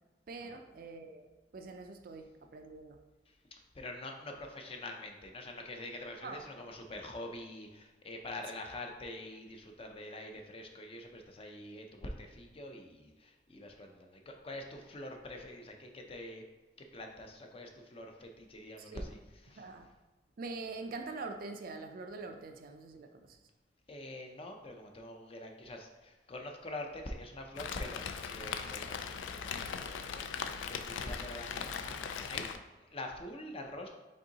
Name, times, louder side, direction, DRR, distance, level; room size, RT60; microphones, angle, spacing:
voice 1, 0.3-3.0 6.2-6.5 18.8-19.1 19.5-19.9 20.4-23.4, right 3 dB, 50° right, 6 dB, 0.4 m, -44 dB
voice 2, 3.5-16.5 16.9-19.8 23.9-33.9, left 1 dB, 30° left, 3 dB, 0.5 m, -45 dB
Rain, 27.5-32.6, left 6 dB, 85° left, 0.3 m, -39 dB
5.2 x 3.7 x 2.8 m, 1.2 s
head